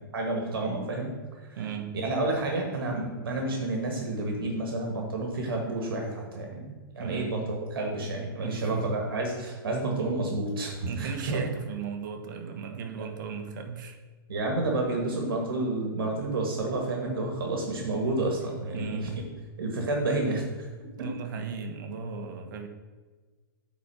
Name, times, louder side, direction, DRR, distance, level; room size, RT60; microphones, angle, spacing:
voice 1, 0.1-1.1 1.4-1.6 1.9-11.4 14.3-19.2 19.6-20.7 21.0-21.1, right 2 dB, 75° right, 1 dB, 1.7 m, -30 dB
voice 2, 1.6-1.9 7.0-7.3 8.4-9.0 10.9-14.0 18.7-19.1 21.0-22.7, right 6 dB, 60° right, 6 dB, 1.2 m, -36 dB
8.5 x 4.2 x 5.6 m, 1.3 s
hypercardioid pair, 130°, 12 cm